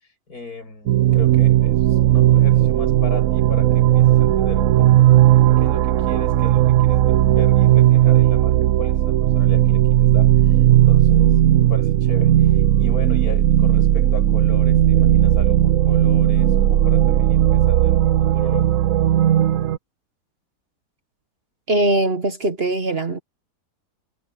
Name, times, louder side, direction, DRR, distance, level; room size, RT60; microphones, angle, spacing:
voice 1, 0.0-5.1 5.6-18.7, left 4 dB, 70° left, 7.2 m, -37 dB
sound 1, 0.9-19.8, right 12 dB, 65° right, 1.0 m, -16 dB
voice 2, 21.7-23.2, right 1 dB, 40° right, 1.4 m, -21 dB
omnidirectional pair, 1.7 m